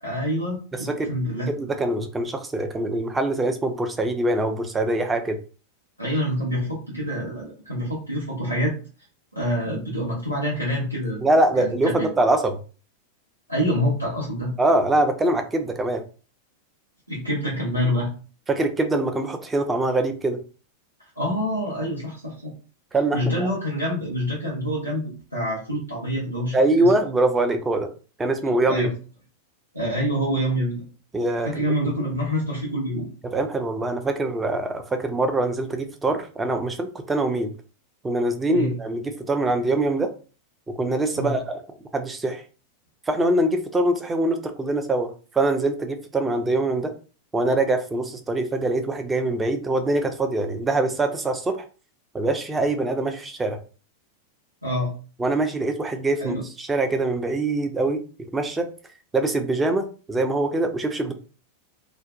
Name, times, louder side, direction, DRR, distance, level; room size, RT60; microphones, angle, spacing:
voice 1, 0.0-1.5 6.0-8.7 9.3-11.2 11.6-12.1 13.5-14.5 17.1-18.1 21.1-22.5 23.1-26.9 28.6-28.9 29.7-30.8 31.4-33.1 38.5-38.8 41.1-41.4 54.6-54.9 56.2-56.4, equal, 90° right, -6 dB, 0.8 m, -26 dB
voice 2, 0.7-1.1 1.5-5.4 11.2-12.5 14.6-16.0 18.5-20.4 22.9-23.5 26.5-27.9 28.2-28.9 31.1-31.5 33.2-37.5 38.0-40.1 40.8-41.6 41.9-42.4 43.1-46.9 47.3-51.7 52.1-53.6 55.2-58.0 58.3-58.7 59.1-61.1, right 2 dB, 15° right, 6 dB, 0.4 m, -23 dB
2.5 x 2.1 x 2.4 m, 0.37 s
figure-of-eight pair, 90°, 0 cm